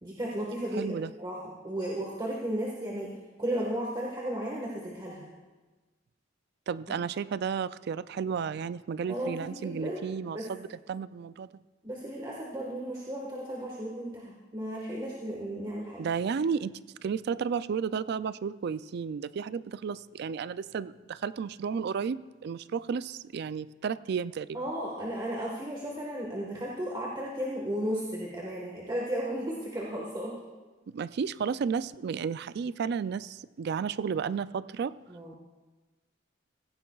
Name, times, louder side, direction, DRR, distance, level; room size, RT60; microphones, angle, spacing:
voice 1, 0.0-3.1 3.4-5.3 9.1-10.0 10.3-10.5 11.8-16.0 24.5-30.4 35.1-35.3, right 1 dB, 25° right, -3 dB, 1.5 m, -34 dB
voice 2, 0.7-1.1 6.7-11.5 16.0-24.6 30.9-34.9, right 6 dB, 60° right, 16 dB, 0.3 m, -33 dB
17.0 x 15.0 x 2.3 m, 1.2 s
head